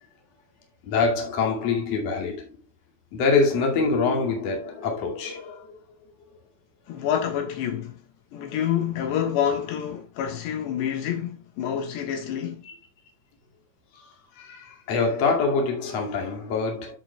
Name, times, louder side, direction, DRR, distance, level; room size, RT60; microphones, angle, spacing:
voice 1, 0.8-2.5 3.1-5.8 12.6-12.7 13.9-14.0 14.4-17.0, left 4 dB, 45° left, 3.0 m, -25 dB
voice 2, 6.9-8.0 8.3-12.6, left 9 dB, 80° left, 3.6 m, -27 dB
14.0 x 6.4 x 2.3 m
omnidirectional pair, 5.1 m